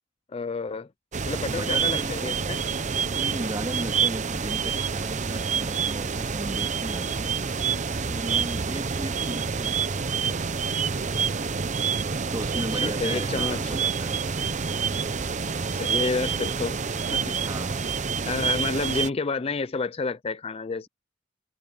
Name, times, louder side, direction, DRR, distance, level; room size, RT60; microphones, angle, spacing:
voice 1, 0.3-0.9 1.3-2.6 12.5-13.8 15.7-16.8 17.1-17.4 18.2-20.9, left 4 dB, 30° left, 0.4 m, -30 dB
sound 1, 1.1-19.1, right 6 dB, 40° right, 0.7 m, -27 dB
voice 2, 1.5-2.4 3.1-7.3 8.1-10.6 12.3-14.2 17.5-17.9, right 1 dB, 20° right, 2.6 m, -36 dB
head